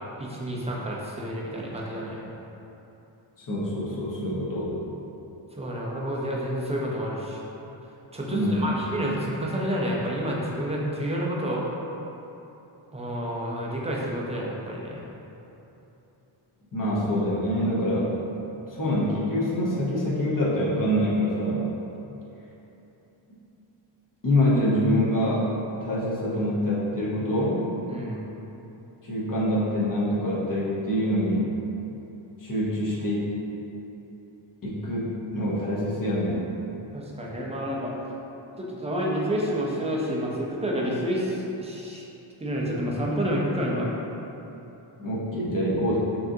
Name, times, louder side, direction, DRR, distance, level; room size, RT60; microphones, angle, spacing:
voice 1, 0.2-2.2 5.6-7.4 8.1-11.6 12.9-15.0 27.9-28.2 36.9-37.9 38.6-42.0 42.4-43.9, equal, 15° right, -3 dB, 0.5 m, -29 dB
voice 2, 3.4-4.7 8.3-8.7 16.7-18.1 18.6-21.7 24.2-25.5 25.8-27.6 29.0-31.5 32.4-33.3 34.6-36.5 45.0-46.0, equal, 40° left, -7 dB, 1.0 m, -25 dB
5.7 x 2.6 x 2.7 m, 3.0 s
wide cardioid pair, 105°, 49 cm